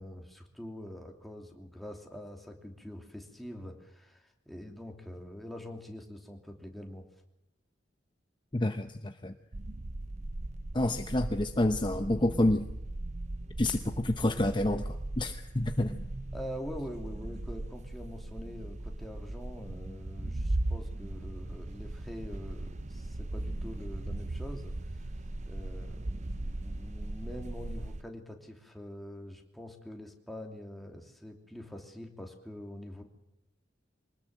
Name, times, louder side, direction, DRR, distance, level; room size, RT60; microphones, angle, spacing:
voice 1, 0.0-7.1 16.3-24.7 25.4-33.0, equal, ahead, 2 dB, 2.9 m, -44 dB
voice 2, 8.5-9.3 10.7-12.7 13.6-16.0, left 1 dB, 25° left, 7 dB, 0.9 m, -29 dB
sound 1, 9.5-28.0, right 1 dB, 40° right, 0.8 m, -38 dB
24.5 x 19.5 x 7.8 m, 0.87 s
head